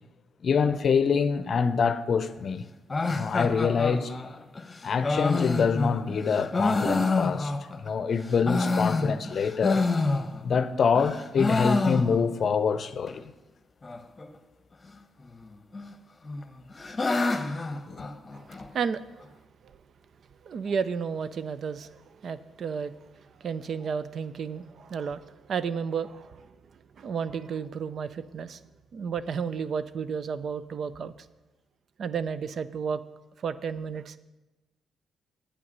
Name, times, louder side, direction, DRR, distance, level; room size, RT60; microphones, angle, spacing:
voice 1, 0.4-2.6 3.1-4.1 4.8-9.9 10.4-13.2 17.9-18.1, left 6 dB, 55° left, 0.6 m, -25 dB
sound 1, 2.9-7.9 8.3-10.7 10.9-12.5 12.8-12.9 13.1-13.2 13.8-14.2 15.3-15.9 16.2-18.7, left 3 dB, 25° left, 0.9 m, -28 dB
voice 2, 18.7-19.2 20.5-22.9 23.4-25.2 25.5-26.5 27.0-28.6 28.9-31.1 32.0-33.0 33.4-34.2, right 6 dB, 60° right, 0.5 m, -32 dB
8.6 x 8.5 x 5.4 m
supercardioid pair, 70°, 0 cm